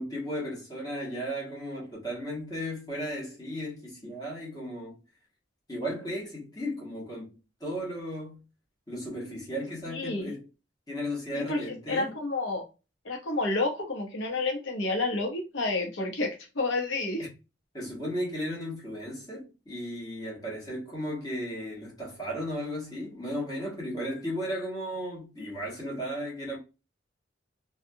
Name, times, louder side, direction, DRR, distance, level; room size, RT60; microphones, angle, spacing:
voice 1, 0.0-4.9 5.7-7.3 7.6-8.4 8.9-10.4 10.9-12.1 17.2-17.3 17.7-26.6, equal, 20° left, 1.2 m, -35 dB
voice 2, 9.9-10.3 11.3-12.6 13.0-16.3 16.5-17.2, left 2 dB, 80° left, 0.8 m, -30 dB
2.6 x 2.3 x 2.6 m
head